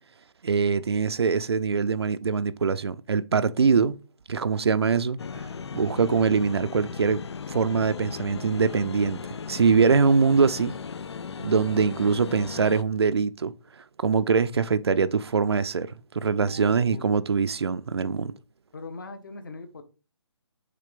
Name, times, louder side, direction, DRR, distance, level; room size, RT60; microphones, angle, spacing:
voice 1, 0.4-4.0 4.3-7.2 7.5-9.2 9.5-10.8 11.4-13.5 14.0-18.3, right 5 dB, 60° right, 0.5 m, -23 dB
sound 1, 5.2-12.8, left 6 dB, 65° left, 0.4 m, -37 dB
voice 2, 16.4-17.1 18.7-19.8, left 3 dB, 45° left, 1.2 m, -40 dB
6.7 x 3.8 x 5.1 m
hypercardioid pair, 175°, 15 cm